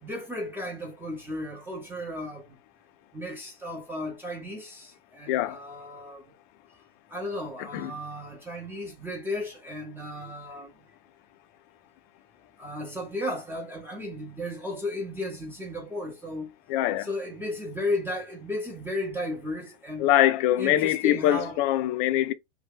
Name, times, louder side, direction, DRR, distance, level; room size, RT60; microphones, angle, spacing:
voice 1, 0.0-2.5 3.1-6.2 7.1-10.7 12.6-16.5 17.0-20.1 20.6-21.6, left 1 dB, 5° right, 0.6 m, -34 dB
voice 2, 5.3-5.6 7.7-7.9 16.7-17.1 20.0-22.3, left 13 dB, 50° left, 0.5 m, -23 dB
2.7 x 2.3 x 3.5 m
hypercardioid pair, 115°, 32 cm